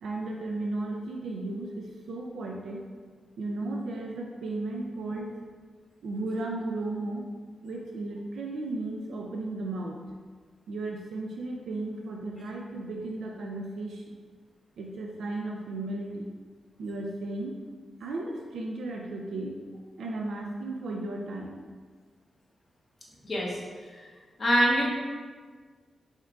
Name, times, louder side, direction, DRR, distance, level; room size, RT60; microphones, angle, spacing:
voice 1, 0.0-2.8 3.4-5.4 6.0-7.3 7.6-10.0 10.7-14.0 14.8-16.3 16.8-17.6 18.0-19.5 20.0-21.6, right 2 dB, 90° right, 0 dB, 0.4 m, -35 dB
voice 2, 23.2-23.6 23.9-24.0 24.4-24.8, equal, 40° left, -4 dB, 1.0 m, -24 dB
5.3 x 3.7 x 2.3 m, 1.5 s
wide cardioid pair, 130°, 0 cm